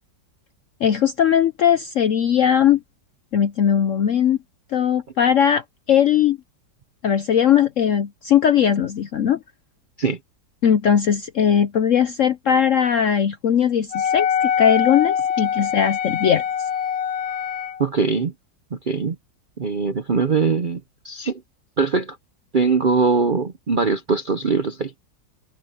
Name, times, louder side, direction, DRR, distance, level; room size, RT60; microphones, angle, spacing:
voice 1, 0.8-2.8 3.3-4.4 4.7-6.4 7.0-9.4 10.6-16.4, left 8 dB, 65° left, 0.8 m, -19 dB
Wind instrument woodwind instrument, 13.9-17.8, left 8 dB, 80° left, 2.0 m, -23 dB
voice 2, 17.8-18.3 18.7-19.2 19.6-21.4 21.8-22.2 22.5-24.9, right 4 dB, 55° right, 0.5 m, -21 dB
omnidirectional pair, 2.0 m